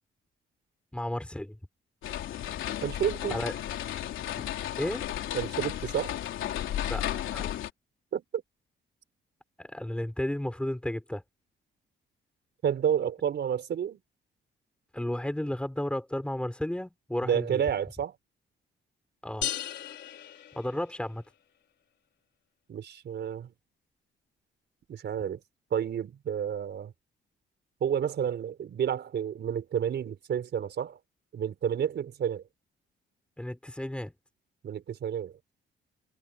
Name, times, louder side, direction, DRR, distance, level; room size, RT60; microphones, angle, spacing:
voice 1, 0.9-1.6 3.3-3.5 4.4-4.5 4.8-5.1 6.9-7.6 9.6-11.2 14.9-17.6 19.2-19.5 20.5-21.2 33.4-34.1, left 1 dB, 5° left, 6.2 m, -33 dB
sound 1, 2.0-7.7, left 12 dB, 80° left, 3.4 m, -34 dB
voice 2, 2.8-3.4 5.3-6.2 8.1-8.4 12.6-14.0 17.2-18.1 22.7-23.5 24.9-25.4 25.7-26.9 27.8-31.0 31.3-32.4 34.6-35.3, right 8 dB, 60° right, 5.0 m, -30 dB
sound 2, 19.4-21.3, left 11 dB, 65° left, 3.7 m, -36 dB
cardioid pair, 90°, 20 cm